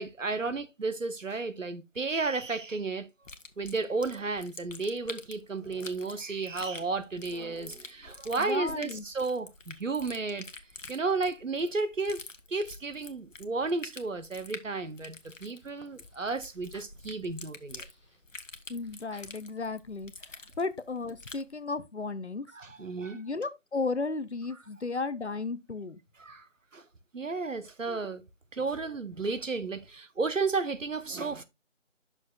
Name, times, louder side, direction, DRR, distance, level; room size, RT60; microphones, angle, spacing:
voice 1, 0.0-3.1 3.6-10.4 10.9-12.2 12.5-17.9 22.5-23.2 26.2-26.5 26.7-26.8 27.1-28.2 28.5-31.4, right 3 dB, 85° right, 0.9 m, -33 dB
sound 1, 3.2-21.5, left 3 dB, 85° left, 1.0 m, -47 dB
voice 2, 8.4-9.0 18.7-22.5 23.1-26.0 27.9-28.0, left 3 dB, 65° left, 0.6 m, -34 dB
sound 2, 13.9-19.9, equal, 25° right, 2.4 m, -63 dB
8.7 x 6.2 x 2.3 m
figure-of-eight pair, 175°, 37 cm